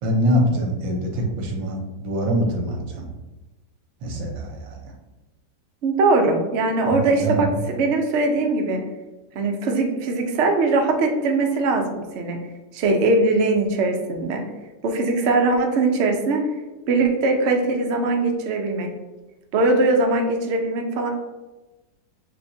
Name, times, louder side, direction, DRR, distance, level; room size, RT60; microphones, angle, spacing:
voice 1, 0.0-3.0 4.0-4.9 6.9-7.6, equal, 85° right, 1 dB, 1.6 m, -24 dB
voice 2, 5.8-8.8 9.3-12.4 12.7-14.4 14.8-16.4 16.9-18.9 19.5-21.1, right 3 dB, 70° right, 2 dB, 0.6 m, -21 dB
5.7 x 3.1 x 2.7 m, 1.1 s
omnidirectional pair, 2.0 m